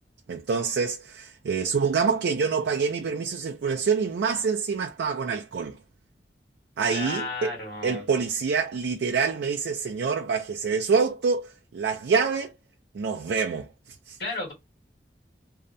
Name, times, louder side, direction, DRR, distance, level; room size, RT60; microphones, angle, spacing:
voice 1, 0.3-5.8 6.8-7.5 7.8-12.5 12.9-13.7 14.1-14.2, right 5 dB, 80° right, 0.4 m, -26 dB
voice 2, 6.9-8.0 14.2-14.5, left 2 dB, 55° left, 1.5 m, -33 dB
2.7 x 2.1 x 2.5 m
head